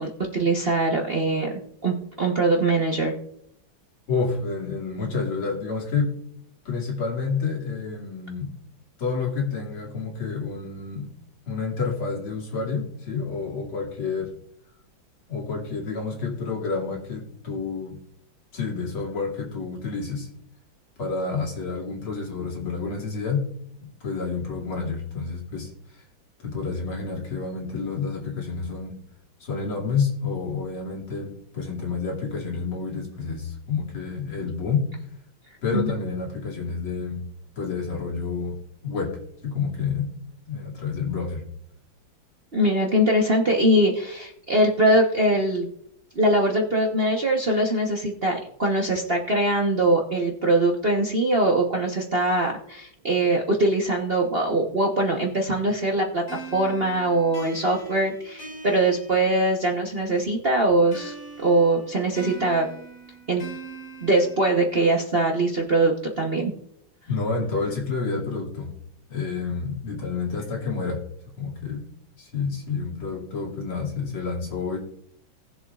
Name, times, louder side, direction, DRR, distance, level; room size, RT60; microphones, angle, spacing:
voice 1, 0.0-3.1 35.7-35.9 42.5-45.7 46.1-62.7 63.3-63.4 64.0-66.5, right 1 dB, 35° right, 0 dB, 1.0 m, -22 dB
voice 2, 4.1-6.2 6.6-8.5 9.0-11.1 11.5-14.3 15.3-18.0 18.5-20.3 21.0-23.4 23.8-26.0 26.4-28.9 29.4-34.9 35.6-37.2 37.6-38.6 38.8-39.2 39.4-40.1 40.5-41.5 67.1-68.7 69.1-71.0 71.4-71.8 72.2-74.8, left 4 dB, 80° left, -2 dB, 3.3 m, -29 dB
sound 1, 56.3-59.9 60.9-64.9, right 3 dB, 55° left, 3.4 m, -41 dB
19.0 x 7.2 x 2.4 m, 0.69 s
omnidirectional pair, 2.3 m